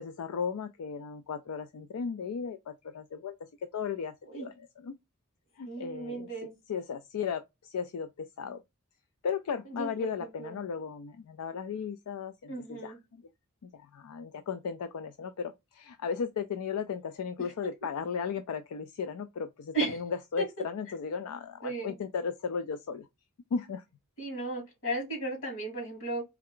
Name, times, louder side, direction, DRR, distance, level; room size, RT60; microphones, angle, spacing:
voice 1, 0.0-5.0 5.6-8.6 9.2-13.2 13.6-23.1 23.5-23.8, left 6 dB, 85° left, 0.4 m, -36 dB
voice 2, 5.6-6.5 9.8-9.9 10.2-10.6 12.5-13.0 19.7-20.0 20.4-20.5 21.6-21.9 24.2-26.2, right 2 dB, 60° left, 2.2 m, -35 dB
3.5 x 3.3 x 3.6 m
head